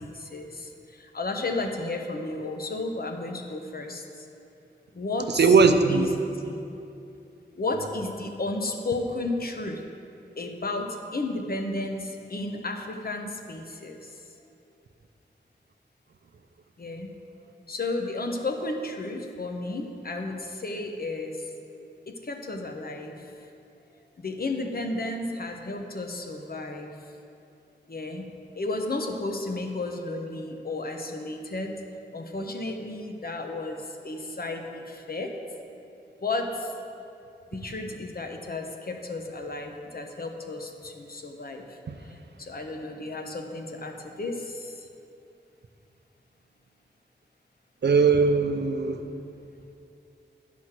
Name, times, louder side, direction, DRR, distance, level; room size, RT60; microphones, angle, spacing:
voice 1, 0.0-4.3 4.9-5.5 5.9-6.1 6.4-6.8 7.6-9.8 10.4-14.2 16.8-17.1 17.7-21.5 22.1-23.3 24.2-27.0 27.9-28.3 28.6-31.8 32.1-35.4 36.2-36.7 37.5-44.9, left 2 dB, 55° left, 4 dB, 1.0 m, -33 dB
voice 2, 5.3-6.1 47.8-49.0, right 4 dB, 70° right, 7 dB, 0.6 m, -19 dB
9.4 x 6.2 x 6.0 m, 2.7 s
wide cardioid pair, 60°, 18 cm